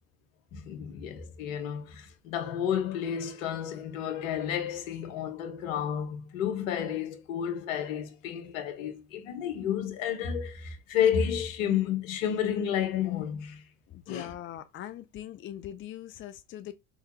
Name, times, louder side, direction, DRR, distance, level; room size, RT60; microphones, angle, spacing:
voice 1, 0.5-13.6 14.1-14.3, left 9 dB, 70° left, 1.3 m, -31 dB
voice 2, 13.9-16.7, left 11 dB, 30° left, 0.5 m, -41 dB
4.6 x 3.5 x 3.0 m
hypercardioid pair, 70°, 41 cm